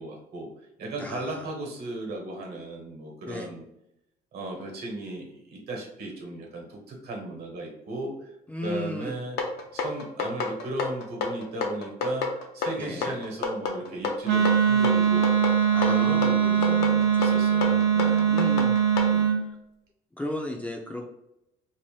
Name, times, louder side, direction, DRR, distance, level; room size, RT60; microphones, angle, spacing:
voice 1, 0.0-3.6 4.3-8.3 8.6-9.4 9.7-15.3 15.8-18.3 19.1-19.3, right 2 dB, 70° right, 2 dB, 1.0 m, -36 dB
voice 2, 1.0-1.5 3.3-3.5 8.5-9.2 12.8-13.1 15.7-17.1 18.3-18.8 19.1-19.6 20.2-21.1, left 1 dB, 10° left, 0 dB, 0.4 m, -35 dB
sound 1, 9.4-19.1, left 4 dB, 75° left, 0.6 m, -29 dB
Wind instrument woodwind instrument, 14.2-19.4, right 8 dB, 85° right, 0.5 m, -22 dB
2.6 x 2.1 x 3.1 m, 0.83 s
cardioid pair, 110°, 17 cm